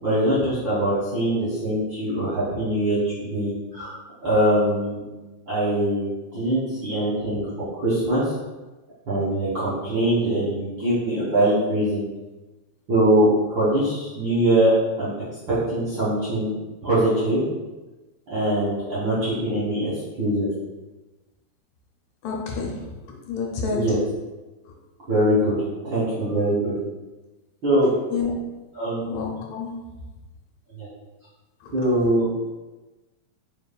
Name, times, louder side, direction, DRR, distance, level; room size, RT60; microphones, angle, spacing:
voice 1, 0.0-3.9 4.2-5.0 5.5-7.5 7.8-8.3 9.1-12.1 12.9-14.7 15.0-15.1 15.5-16.5 16.8-17.4 18.3-20.5 23.7-24.0 25.1-25.6 25.8-26.7 27.6-27.9 28.7-29.0 30.8-30.9 31.7-32.3, right 1 dB, 65° right, -10 dB, 1.2 m, -22 dB
voice 2, 22.2-22.9 23.3-23.9 28.1-28.4 29.0-29.8 31.6-31.7, left 4 dB, 75° left, -1 dB, 1.9 m, -29 dB
4.5 x 3.9 x 2.2 m, 1.1 s
omnidirectional pair, 3.5 m